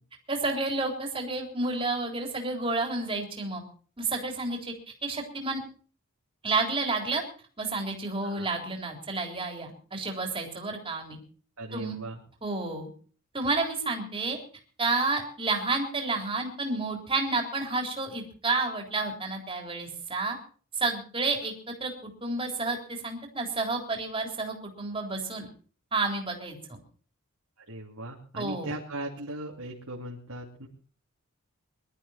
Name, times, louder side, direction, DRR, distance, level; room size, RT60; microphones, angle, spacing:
voice 1, 0.3-3.6 4.0-4.7 5.0-5.6 6.4-7.2 7.6-11.2 11.7-12.0 12.4-12.9 13.3-14.4 14.8-20.4 20.8-25.5 25.9-26.8 28.4-28.7, right 3 dB, 25° right, 2 dB, 3.7 m, -30 dB
voice 2, 11.6-12.2 27.7-30.7, right 1 dB, 80° right, -3 dB, 3.0 m, -38 dB
22.0 x 12.5 x 4.3 m, 0.41 s
head